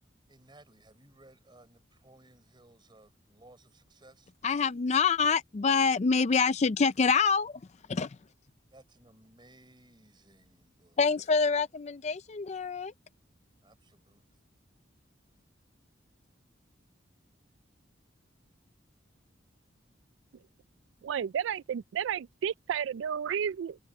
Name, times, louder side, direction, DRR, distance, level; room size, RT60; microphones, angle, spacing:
voice 1, 0.3-4.3 8.7-11.0 13.6-14.4, right 1 dB, 25° right, 6.3 m, -59 dB
voice 2, 4.4-7.5 7.9-8.1 11.0-12.9, left 5 dB, 35° left, 0.4 m, -26 dB
voice 3, 21.0-23.8, right 8 dB, 80° right, 0.3 m, -32 dB
head